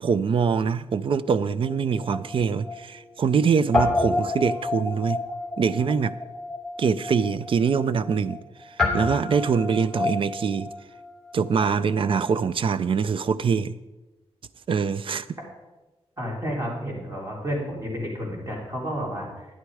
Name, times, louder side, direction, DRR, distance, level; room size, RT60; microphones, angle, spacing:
voice 1, 0.0-5.2 5.6-6.1 6.8-8.4 8.9-10.7 11.3-13.7 14.7-15.3, right 6 dB, 55° right, 16 dB, 0.5 m, -24 dB
Guitar, 1.6-3.4 3.7-12.4, left 2 dB, ahead, 2.5 m, -30 dB
voice 2, 16.2-19.5, equal, 30° right, -2 dB, 3.5 m, -31 dB
11.5 x 9.6 x 4.8 m, 1.1 s
wide cardioid pair, 125°, 11 cm